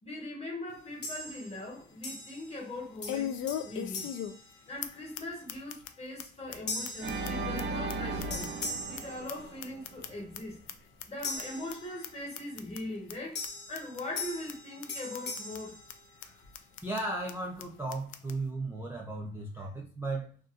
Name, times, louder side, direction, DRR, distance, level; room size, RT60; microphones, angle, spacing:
voice 1, 0.0-4.2 4.7-10.6 11.1-15.8, left 1 dB, 30° left, 1.1 m, -41 dB
sound 1, 0.7-0.8 1.3-1.4 3.1-4.5 4.8-4.9 5.1-5.2 5.5-5.9 6.2-6.3 6.5-6.6 6.8-9.0 9.3-10.4 10.7-10.8 11.0-11.4 11.7-11.8 12.0-12.1 12.3-12.8 13.1-13.2 13.4-13.5 13.7-14.2 14.5-14.6 14.8-14.9 15.1-15.6 15.9-16.0 16.2-16.3 16.5-17.0 17.3-17.4 17.6-17.7 17.9-18.3, left 10 dB, 75° left, 0.4 m, -38 dB
sound 2, 1.0-1.7 2.0-2.7 3.0-5.2 5.7-6.0 6.7-8.0 8.3-9.9 11.2-12.4 13.3-16.6, left 2 dB, 60° left, 1.1 m, -41 dB
Organ, 7.0-10.1, right 3 dB, 65° right, 0.5 m, -36 dB
voice 2, 16.8-20.4, right 2 dB, 10° right, 0.6 m, -36 dB
2.7 x 2.3 x 2.4 m
cardioid pair, 90°, 20 cm